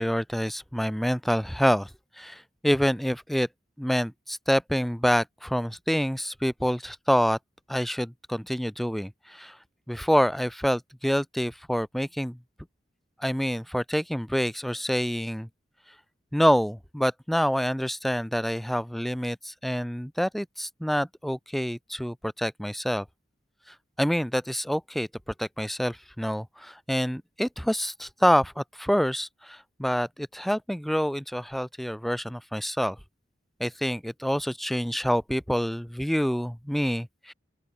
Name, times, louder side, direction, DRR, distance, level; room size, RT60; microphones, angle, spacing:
voice 1, 0.0-1.9 2.2-3.5 3.8-7.4 7.7-9.6 9.9-12.4 13.2-15.5 16.3-23.1 24.0-25.1 25.4-33.0 33.6-37.3, equal, ahead, 0.3 m, -27 dB
open air
head